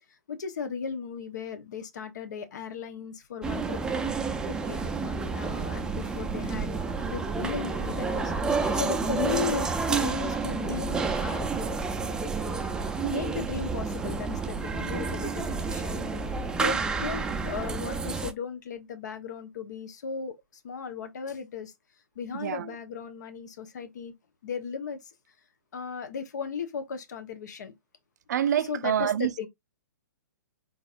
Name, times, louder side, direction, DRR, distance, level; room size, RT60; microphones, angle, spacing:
voice 1, 0.3-4.0 4.5-6.7 7.1-11.5 12.0-12.1 13.0-16.0 16.6-20.3 20.6-21.7 22.1-24.1 24.4-25.1 25.7-27.7 28.7-29.5, left 6 dB, 70° left, 1.1 m, -36 dB
sound 1, 3.4-18.3, right 4 dB, 5° right, 0.4 m, -30 dB
voice 2, 22.3-22.7 28.3-29.3, right 10 dB, 65° right, 0.5 m, -26 dB
3.9 x 3.8 x 2.5 m
hypercardioid pair, 130°, 10 cm